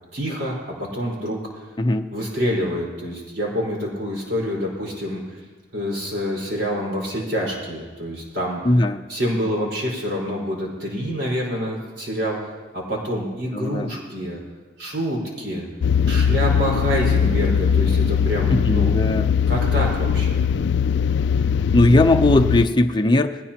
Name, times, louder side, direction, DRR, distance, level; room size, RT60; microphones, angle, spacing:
voice 1, 0.1-1.7 2.1-5.4 5.7-8.6 9.1-12.4 12.7-14.4 14.8-15.6 16.1-19.0 19.5-20.4, equal, 70° right, -3 dB, 4.6 m, -27 dB
voice 2, 8.7-9.0 13.5-13.9 18.5-19.2 21.7-23.4, left 1 dB, 25° left, 6 dB, 0.6 m, -18 dB
sound 1, 15.8-22.7, left 7 dB, 70° left, 0.3 m, -20 dB
20.5 x 17.0 x 2.9 m, 1.3 s
head